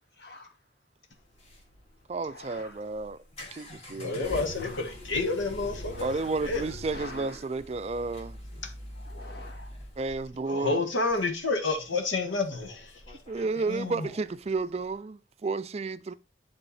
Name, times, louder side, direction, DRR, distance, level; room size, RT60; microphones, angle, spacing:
voice 1, 0.1-0.5 2.2-2.8 4.3-4.9 5.8-6.4 6.9-7.5 8.9-9.7, left 2 dB, 55° left, 2.0 m, -46 dB
sound 1, 1.1-15.0, equal, 35° left, 2.1 m, -45 dB
voice 2, 2.1-3.2 3.5-4.5 6.0-8.4 10.0-10.9 13.3-16.1, right 3 dB, 35° right, 0.3 m, -32 dB
voice 3, 4.0-6.1 6.4-6.6 10.5-12.9 13.7-14.1, left 3 dB, 90° left, 1.6 m, -29 dB
10.0 x 3.6 x 4.1 m
head